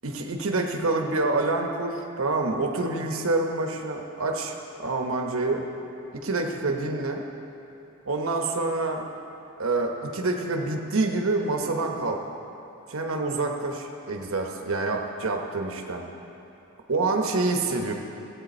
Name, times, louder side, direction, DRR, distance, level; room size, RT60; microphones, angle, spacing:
voice 1, 0.0-4.5 4.8-5.7 6.1-7.2 8.0-9.1 9.6-12.2 12.9-16.1 16.9-17.9, right 3 dB, 75° right, 2 dB, 1.0 m, -27 dB
14.5 x 8.5 x 4.3 m, 3.0 s
head